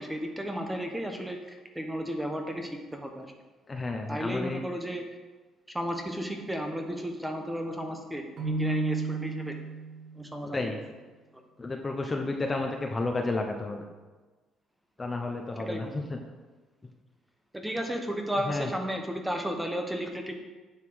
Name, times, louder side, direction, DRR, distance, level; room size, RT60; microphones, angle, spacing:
voice 1, 0.0-3.3 4.1-5.0 5.7-9.5 10.1-10.8 15.7-16.0 17.5-20.3, equal, 5° right, 4 dB, 1.1 m, -33 dB
voice 2, 3.7-4.6 10.5-10.8 11.6-13.8 15.0-15.8 18.5-18.7, left 3 dB, 20° left, 3 dB, 0.9 m, -31 dB
Keyboard (musical), 8.4-10.2, right 3 dB, 55° right, 2.3 m, -32 dB
9.6 x 5.7 x 6.3 m, 1.3 s
cardioid pair, 130°, 0 cm